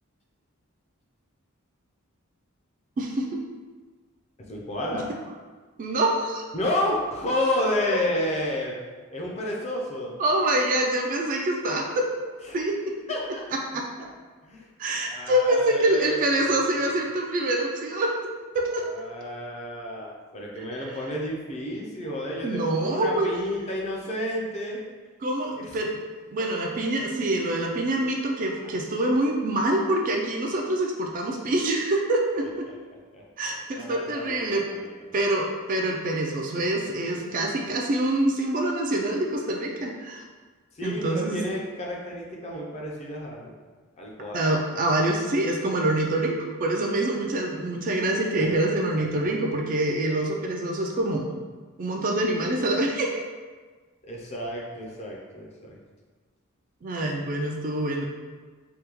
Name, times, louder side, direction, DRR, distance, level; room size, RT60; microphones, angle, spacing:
voice 1, 3.0-3.4 4.9-5.0 5.8-6.4 10.2-12.1 12.5-12.7 13.7-13.8 14.8-18.1 18.5-18.9 22.4-23.3 25.2-26.0 26.3-32.7 33.4-34.7 35.1-40.2 40.8-41.4 44.3-51.3 51.8-53.2 56.8-58.1, right 1 dB, 40° right, 0 dB, 0.3 m, -25 dB
voice 2, 4.4-5.1 6.5-8.8 9.1-10.2 12.4-12.6 13.1-13.4 14.0-14.1 14.4-14.7 15.0-16.9 18.8-24.8 25.6-25.7 32.7-32.8 33.1-35.3 40.7-43.6 44.0-44.5 48.4-48.5 54.0-55.8, left 1 dB, 30° left, -2 dB, 0.5 m, -31 dB
3.4 x 2.2 x 2.9 m, 1.4 s
head